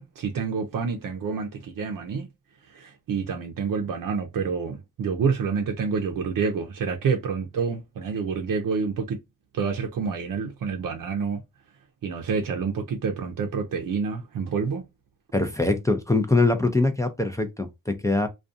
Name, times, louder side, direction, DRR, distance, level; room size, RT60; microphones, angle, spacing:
voice 1, 0.0-2.3 2.7-9.2 9.5-11.4 12.0-14.8, right 5 dB, 75° right, 0.5 m, -28 dB
voice 2, 15.3-18.3, left 2 dB, 10° left, 0.4 m, -23 dB
2.5 x 2.3 x 2.4 m
wide cardioid pair, 125°, 33 cm